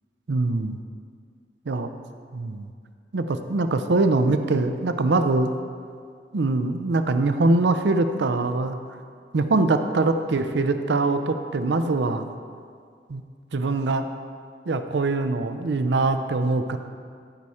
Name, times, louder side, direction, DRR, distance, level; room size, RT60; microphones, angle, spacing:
voice 1, 0.3-0.8 1.7-1.9 2.3-2.7 3.1-5.5 6.3-8.8 9.3-12.2 13.1-13.2 13.5-14.0 14.7-16.8, right 3 dB, 80° right, 8 dB, 0.5 m, -23 dB
14.0 x 4.9 x 4.2 m, 2.1 s
head